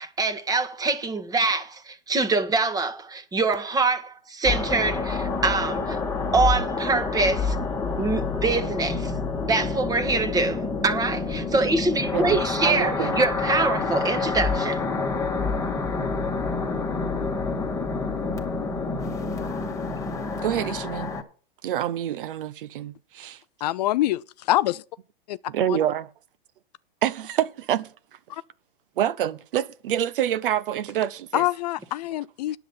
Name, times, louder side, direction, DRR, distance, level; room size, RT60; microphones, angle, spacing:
voice 1, 0.0-6.0 6.3-7.6 8.0-9.1 9.4-14.8, right 3 dB, 10° right, 1.4 m, -24 dB
sound 1, 4.4-21.2, left 4 dB, 10° left, 1.6 m, -28 dB
voice 2, 12.1-13.2 20.4-21.1 21.6-23.4 25.5-26.1 27.0-27.9 29.0-31.5, right 11 dB, 60° right, 0.9 m, -27 dB
voice 3, 23.6-24.8 25.3-25.4 25.7-25.8 28.3-28.4 31.3-32.6, left 15 dB, 45° left, 0.4 m, -25 dB
10.0 x 8.0 x 5.6 m
hypercardioid pair, 130°, 30 cm